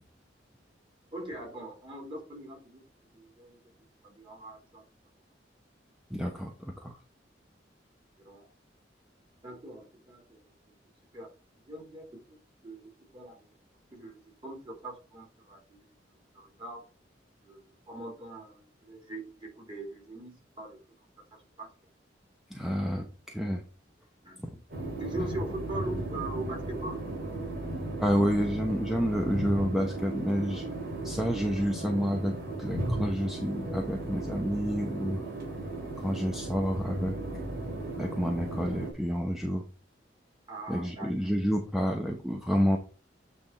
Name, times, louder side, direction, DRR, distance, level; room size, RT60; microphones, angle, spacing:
voice 1, 1.1-2.8 3.1-3.6 4.0-4.8 8.2-8.5 9.4-10.4 11.1-11.3 11.6-12.2 12.6-13.4 13.9-15.9 16.3-16.8 17.4-20.8 21.3-21.7 24.2-24.6 25.0-27.0 40.5-41.1, right 2 dB, 30° right, -1 dB, 4.0 m, -41 dB
voice 2, 6.1-7.0 22.5-23.6 24.4-24.5 28.0-30.6 31.0-35.2 36.0-37.2 38.0-39.6 40.7-42.8, equal, ahead, 1 dB, 0.9 m, -29 dB
sound 1, 24.7-38.9, right 2 dB, 55° right, 3.2 m, -35 dB
8.8 x 3.7 x 4.4 m, 0.34 s
head